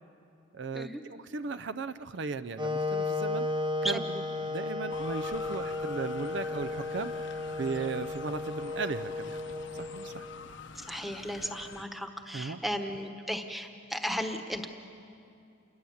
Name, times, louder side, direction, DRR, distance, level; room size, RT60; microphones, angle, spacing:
voice 1, 0.5-3.5 3.8-4.0 4.5-7.3 7.6-10.3 12.3-12.6, right 4 dB, 60° right, 12 dB, 0.5 m, -36 dB
Wind instrument woodwind instrument, 2.6-10.5, left 2 dB, 25° right, 0.8 m, -34 dB
Motor vehicle (road) / Siren, 4.9-11.8, left 5 dB, 65° left, 0.8 m, -46 dB
voice 2, 10.7-14.7, equal, ahead, 5 dB, 1.2 m, -35 dB
28.5 x 21.0 x 7.1 m, 2.5 s
head